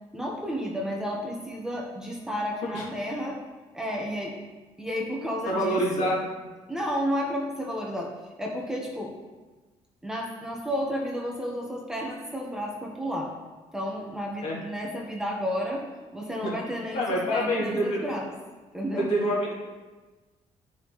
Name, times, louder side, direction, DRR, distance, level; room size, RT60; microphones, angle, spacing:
voice 1, 0.1-3.4 3.7-4.4 4.8-6.1 6.7-8.1 8.4-9.1 10.0-13.3 13.7-15.8 16.1-18.3 18.7-19.1, equal, 5° right, -1 dB, 1.3 m, -32 dB
voice 2, 5.5-6.2 14.4-14.6 16.4-16.6 16.9-18.0 19.0-19.5, equal, 65° left, -5 dB, 2.9 m, -26 dB
13.0 x 5.5 x 3.2 m, 1.3 s
cardioid pair, 130°, 12 cm